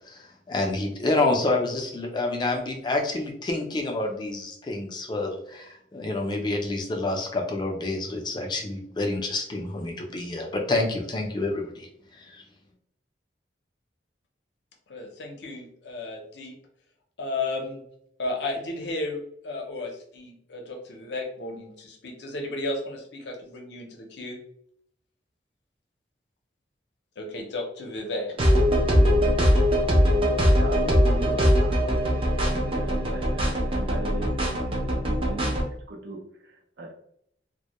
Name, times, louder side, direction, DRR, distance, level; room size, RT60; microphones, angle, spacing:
voice 1, 0.1-11.9 12.1-12.4, left 2 dB, 25° left, 1 dB, 0.4 m, -28 dB
voice 2, 14.9-16.5 17.2-17.8 18.2-24.4 27.2-28.3, left 2 dB, 70° left, 1 dB, 0.6 m, -33 dB
sound 1, 28.4-35.6, equal, 30° right, 0.4 m, -21 dB
voice 3, 30.5-31.9 32.4-35.6 35.9-36.9, right 1 dB, 80° right, 0 dB, 0.6 m, -39 dB
2.1 x 2.1 x 2.8 m, 0.70 s
head